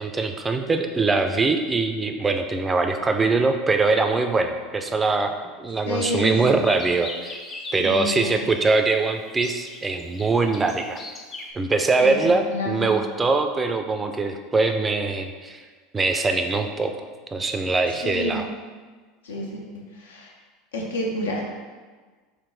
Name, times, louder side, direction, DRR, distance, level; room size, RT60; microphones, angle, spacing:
voice 1, 0.0-5.3 5.6-7.4 7.7-11.0 11.5-15.6 15.9-17.0 17.3-18.5, right 3 dB, 20° right, 6 dB, 0.4 m, -22 dB
voice 2, 5.9-6.6 7.8-8.4 12.0-12.9 18.0-18.4 19.2-19.7 20.0-20.3 20.7-21.4, left 1 dB, 85° left, -1 dB, 0.7 m, -29 dB
sound 1, 6.4-8.5 9.3-11.5, left 2 dB, 30° left, 0.6 m, -38 dB
3.7 x 2.5 x 3.8 m, 1.4 s
hypercardioid pair, 85°, 0 cm